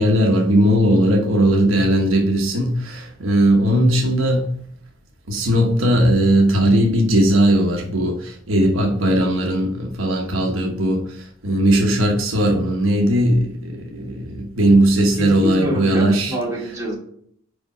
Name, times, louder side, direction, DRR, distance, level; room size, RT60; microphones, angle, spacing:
voice 1, 0.0-4.6 5.3-16.3, right 1 dB, 75° right, 1.2 m, -18 dB
voice 2, 15.2-16.9, right 1 dB, 15° right, 2.6 m, -26 dB
5.2 x 5.1 x 4.9 m
head